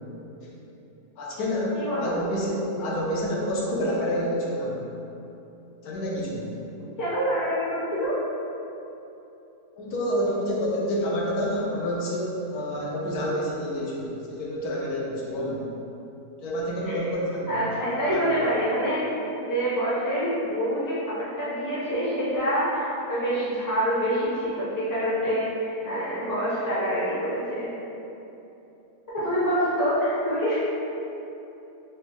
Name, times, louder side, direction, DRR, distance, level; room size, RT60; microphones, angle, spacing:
voice 1, 1.2-4.8 5.8-6.5 9.8-15.6 16.4-17.6 18.0-18.2, equal, 85° left, -4 dB, 1.2 m, -28 dB
voice 2, 1.7-2.2 7.0-8.2 16.9-17.0 17.5-19.1 19.5-27.7 29.1-30.6, equal, 20° left, -10 dB, 0.7 m, -26 dB
4.1 x 2.3 x 3.3 m, 2.9 s
omnidirectional pair, 1.6 m